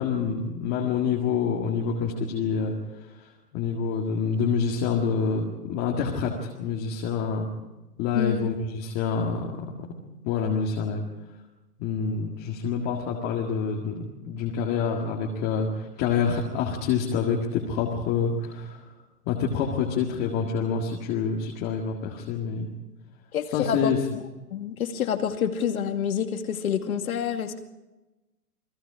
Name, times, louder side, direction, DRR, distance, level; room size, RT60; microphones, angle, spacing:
voice 1, 0.0-2.7 3.5-7.5 8.0-9.9 10.2-11.0 11.8-18.8 19.3-22.7 23.5-24.0, left 6 dB, 20° left, -1 dB, 1.9 m, -27 dB
voice 2, 8.1-8.5 23.3-23.9 24.5-27.6, left 8 dB, 60° left, 6 dB, 2.4 m, -27 dB
29.5 x 20.0 x 4.9 m, 1.0 s
hypercardioid pair, 165°, 49 cm